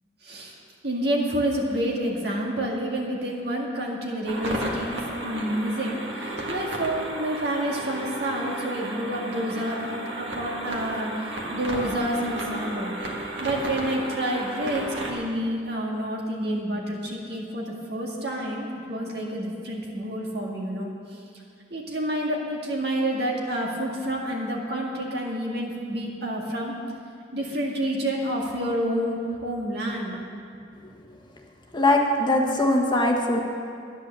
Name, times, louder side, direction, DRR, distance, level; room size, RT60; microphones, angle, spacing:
voice 1, 0.2-0.5 0.8-5.9 6.2-13.0 13.4-20.9 21.7-26.7 27.3-30.2, right 1 dB, 60° right, -1 dB, 2.0 m, -29 dB
sound 1, 4.3-15.1, right 1 dB, 80° right, 1.8 m, -33 dB
voice 2, 31.7-33.4, left 1 dB, 25° left, 1 dB, 1.3 m, -21 dB
11.5 x 9.7 x 6.8 m, 2.4 s
head